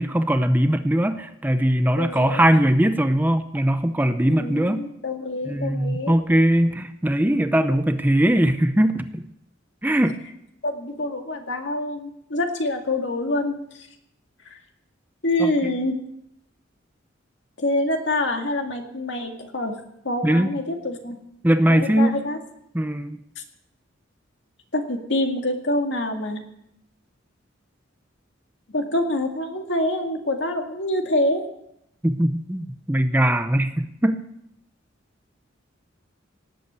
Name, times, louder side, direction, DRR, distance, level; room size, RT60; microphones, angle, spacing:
voice 1, 0.0-4.8 5.5-9.2 9.8-10.2 15.4-15.5 20.2-20.5 21.4-22.2 22.7-23.2 32.0-34.2, right 1 dB, 10° right, 9 dB, 0.6 m, -20 dB
voice 2, 2.0-2.4 4.3-6.2 10.6-13.9 14.5-14.6 15.2-15.9 17.6-19.8 20.0-21.2 21.7-22.4 23.4-23.5 24.7-26.4 28.7-31.4, left 1 dB, 65° left, 4 dB, 2.2 m, -26 dB
18.0 x 8.4 x 8.2 m, 0.80 s
head